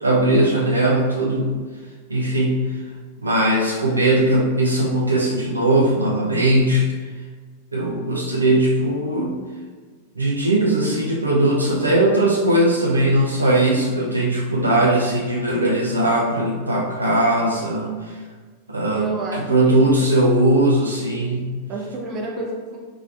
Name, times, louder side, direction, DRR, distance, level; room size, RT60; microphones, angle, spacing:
voice 1, 0.0-1.6 2.1-2.8 3.2-6.9 7.7-9.3 10.2-18.2 18.7-21.5, right 1 dB, 80° right, -3 dB, 0.5 m, -19 dB
voice 2, 18.9-20.0 21.7-22.8, right 2 dB, 35° right, -2 dB, 0.8 m, -30 dB
3.5 x 3.4 x 2.5 m, 1.5 s
figure-of-eight pair, 90°, 0 cm